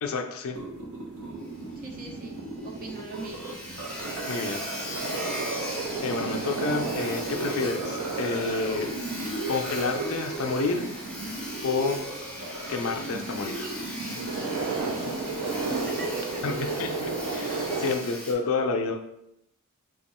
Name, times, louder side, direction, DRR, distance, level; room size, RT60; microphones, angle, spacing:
voice 1, 0.0-0.6 4.3-4.6 6.0-8.9 9.5-10.9 11.6-12.0 12.7-13.7 16.4-19.0, left 4 dB, 65° left, 4 dB, 0.4 m, -29 dB
sound 1, 0.5-17.8, right 2 dB, 65° right, 0.9 m, -37 dB
Sawing, 1.4-1.5 1.9-2.0 2.3-2.4 2.6-18.3, left 1 dB, 5° left, 0.6 m, -39 dB
voice 2, 1.8-3.6 14.7-15.1 15.5-17.0, right 2 dB, 40° right, 1 dB, 0.6 m, -41 dB
sound 2, 4.0-17.9, right 3 dB, 85° right, 0.5 m, -35 dB
2.9 x 2.4 x 4.1 m, 0.83 s
head